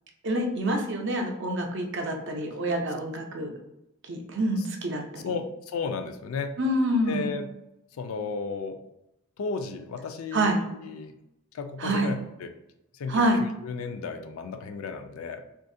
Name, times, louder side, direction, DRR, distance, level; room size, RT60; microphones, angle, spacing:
voice 1, 0.2-3.5 4.1-5.3 6.6-7.3 10.3-10.6 11.8-12.1 13.1-13.4, right 1 dB, 55° right, 3 dB, 0.5 m, -27 dB
voice 2, 5.2-6.6 7.1-7.5 8.0-8.8 9.4-11.1 11.5-12.5 12.9-15.4, left 4 dB, 80° left, 7 dB, 0.3 m, -34 dB
2.7 x 2.5 x 2.5 m, 0.86 s
head